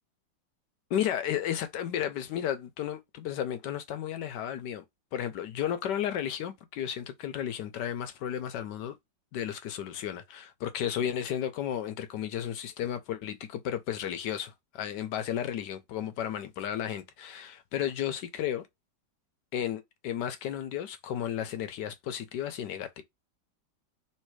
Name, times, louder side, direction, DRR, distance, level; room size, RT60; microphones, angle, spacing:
voice 1, 0.9-4.8 5.1-9.0 9.3-18.7 19.5-23.0, left 10 dB, 75° left, 1.2 m, -33 dB
3.2 x 3.2 x 4.6 m
omnidirectional pair, 1.9 m